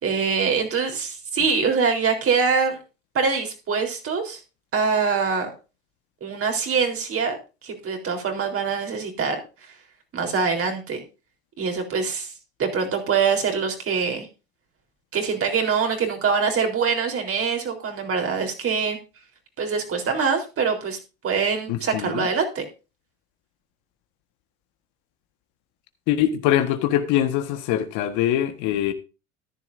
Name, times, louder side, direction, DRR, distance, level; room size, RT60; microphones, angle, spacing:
voice 1, 0.0-2.8 3.1-4.4 4.7-5.5 6.2-7.4 7.6-9.4 10.1-11.0 11.6-12.3 12.6-14.3 15.1-19.0 19.6-21.0 21.2-22.6, right 5 dB, 45° right, 3.9 m, -24 dB
voice 2, 21.7-22.3 26.1-28.9, left 11 dB, 65° left, 1.5 m, -23 dB
14.0 x 10.5 x 2.6 m
hypercardioid pair, 80°, 33 cm